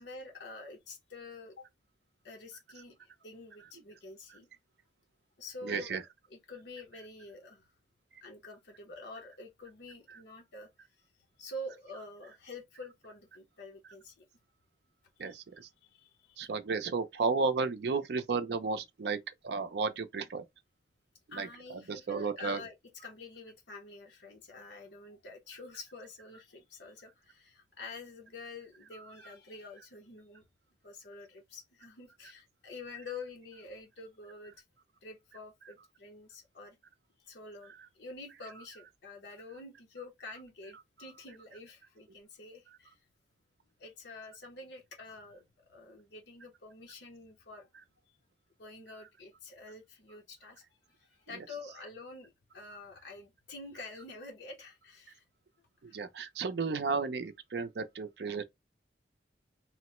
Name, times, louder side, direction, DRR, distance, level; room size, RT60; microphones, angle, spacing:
voice 1, 0.0-1.7 2.2-4.5 5.4-6.0 6.3-7.7 8.2-10.7 11.4-14.2 15.2-15.4 15.8-16.5 21.3-22.7 23.0-30.4 30.8-34.5 35.0-36.8 37.2-43.0 43.8-47.7 48.6-50.6 51.0-55.2 55.9-56.0, left 2 dB, 70° left, 0.8 m, -48 dB
voice 2, 5.6-6.0 10.1-10.2 11.9-12.0 15.2-15.7 16.4-19.2 19.4-20.4 21.3-22.6 28.9-29.4 38.5-38.7 40.0-40.1 40.7-41.1 51.3-51.7 52.7-52.8 55.8-58.4, right 4 dB, 65° right, 0.4 m, -34 dB
2.9 x 2.1 x 2.9 m
head